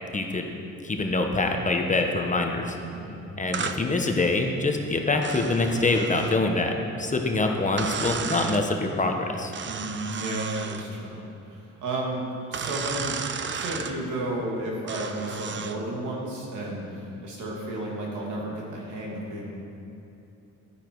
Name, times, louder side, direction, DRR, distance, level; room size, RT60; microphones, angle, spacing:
voice 1, 0.1-0.5 0.8-2.8 3.4-9.5, left 2 dB, 25° left, 3 dB, 1.1 m, -25 dB
voice 2, 2.8-3.3 9.6-19.5, right 1 dB, 80° right, -2 dB, 2.6 m, -33 dB
sound 1, 3.5-3.8 5.2-6.4 7.8-8.6 9.5-10.9 12.5-14.0 14.9-15.8, right 6 dB, 40° right, 0.7 m, -33 dB
11.5 x 9.5 x 4.8 m, 3.0 s
cardioid pair, 90°, 30 cm